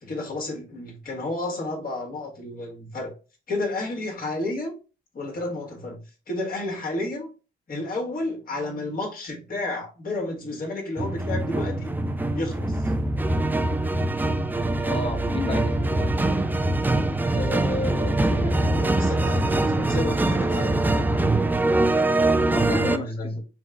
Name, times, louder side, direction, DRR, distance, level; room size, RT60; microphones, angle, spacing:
voice 1, 0.0-3.2 3.5-4.7 5.1-6.0 6.3-7.3 7.7-11.9 12.3-12.8 17.3-21.0 22.7-23.4, left 2 dB, 45° left, 1.7 m, -31 dB
sound 1, 11.0-23.0, right 2 dB, 10° right, 0.4 m, -23 dB
voice 2, 14.8-16.2 22.5-23.4, left 3 dB, 25° left, 1.2 m, -33 dB
5.2 x 2.2 x 3.7 m
cardioid pair, 90°, 20 cm